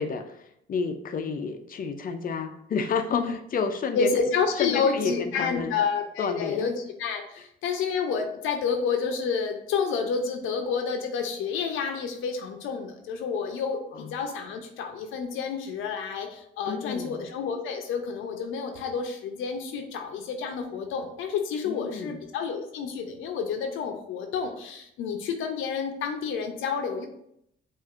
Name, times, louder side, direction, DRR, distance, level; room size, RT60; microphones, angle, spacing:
voice 1, 0.0-4.1 4.6-5.7 6.2-6.7 13.9-14.1 16.7-17.2 21.7-22.2, left 5 dB, 45° left, 7 dB, 0.5 m, -30 dB
voice 2, 3.9-27.1, left 5 dB, 90° left, 4 dB, 0.6 m, -29 dB
5.9 x 2.5 x 2.4 m, 0.74 s
cardioid pair, 90°, 20 cm